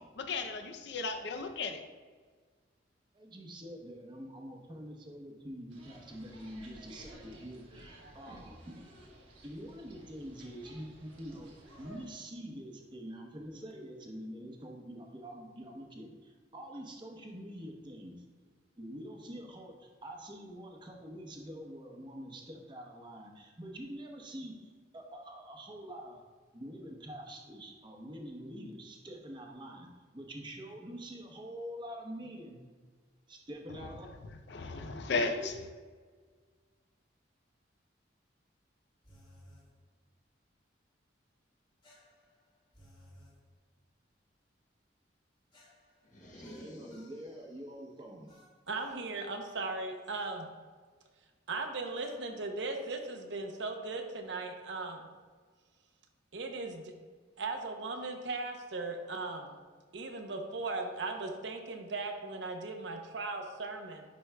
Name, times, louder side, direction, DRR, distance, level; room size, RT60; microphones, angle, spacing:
voice 1, 0.0-1.8 33.7-33.8 34.5-35.5, left 4 dB, 60° left, 7 dB, 0.5 m, -35 dB
voice 2, 3.1-8.9 9.4-11.5 11.8-18.2 18.8-26.2 26.5-29.9 30.1-32.6 33.3-34.1 35.1-35.6 46.2-48.3, equal, 25° right, 1 dB, 0.8 m, -46 dB
sound 1, 5.7-12.1, right 1 dB, 85° right, 1.2 m, -54 dB
sound 2, 39.0-39.7 41.8-43.4 45.5-47.2 48.3-49.0 50.1-50.4 52.0-52.2, equal, 25° left, 1.1 m, -59 dB
sound 3, 46.0-47.7, left 1 dB, 40° left, 0.9 m, -52 dB
voice 3, 48.7-50.5 51.5-55.0 56.3-56.9 57.4-59.5 59.9-64.0, right 3 dB, 65° right, 4 dB, 0.7 m, -38 dB
10.5 x 4.7 x 2.2 m, 1.5 s
head